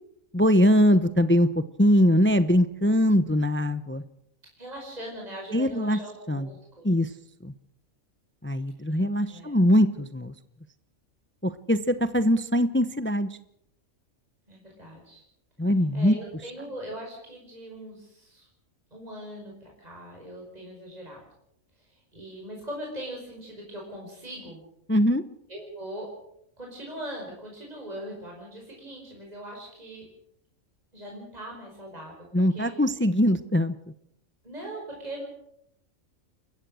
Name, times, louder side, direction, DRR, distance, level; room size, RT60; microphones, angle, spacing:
voice 1, 0.3-4.0 5.5-6.0 6.3-6.5 6.8-7.1 7.4-7.5 8.4-10.3 11.4-13.3 15.6-16.2 24.9-25.2 32.3-33.7, equal, 10° left, 13 dB, 0.7 m, -22 dB
voice 2, 4.6-7.1 9.3-9.6 14.5-15.2 15.9-18.5 18.9-21.2 21.8-24.6 25.5-26.1 26.6-30.1 30.9-32.7 34.4-35.2, right 1 dB, 30° right, -1 dB, 5.4 m, -40 dB
29.5 x 15.0 x 6.3 m, 0.74 s
omnidirectional pair, 1.5 m